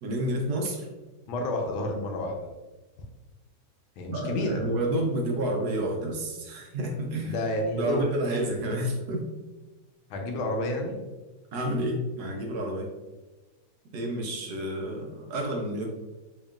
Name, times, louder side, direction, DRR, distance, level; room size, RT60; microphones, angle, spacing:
voice 1, 0.0-0.9 4.1-7.3 7.8-9.2 11.5-12.9 13.9-15.9, right 1 dB, 65° right, 1 dB, 1.0 m, -29 dB
voice 2, 1.3-2.5 4.0-4.6 7.2-8.0 10.1-11.0, left 1 dB, 85° left, 2 dB, 1.5 m, -30 dB
4.4 x 3.0 x 2.4 m, 1.2 s
omnidirectional pair, 2.2 m